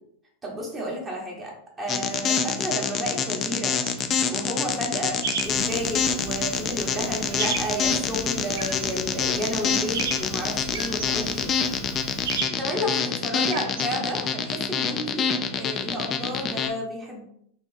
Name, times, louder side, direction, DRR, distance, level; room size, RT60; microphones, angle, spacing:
voice 1, 0.4-1.5 1.8-3.8 4.3-11.5 12.6-17.2, equal, 15° right, -2 dB, 0.9 m, -32 dB
sound 1, 1.9-16.7, left 6 dB, 30° left, 0.4 m, -26 dB
sound 2, 3.8-14.3, right 5 dB, 80° right, 0.7 m, -36 dB
Fire, 5.4-12.4, left 3 dB, 55° left, 0.8 m, -41 dB
3.1 x 2.4 x 4.0 m, 0.69 s
supercardioid pair, 135°, 0 cm